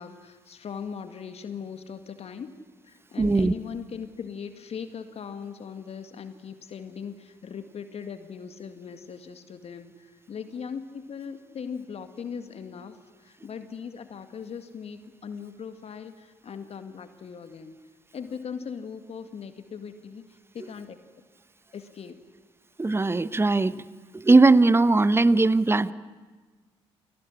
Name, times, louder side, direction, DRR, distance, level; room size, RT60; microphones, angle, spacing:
voice 1, 0.0-2.5 2.8-17.7 18.1-21.0 21.7-22.2, left 6 dB, 45° left, 9 dB, 2.0 m, -39 dB
voice 2, 3.2-3.5 22.8-23.8 24.1-25.9, right 3 dB, 15° right, 16 dB, 1.0 m, -19 dB
29.0 x 19.5 x 10.0 m, 1.4 s
figure-of-eight pair, 45°, 14 cm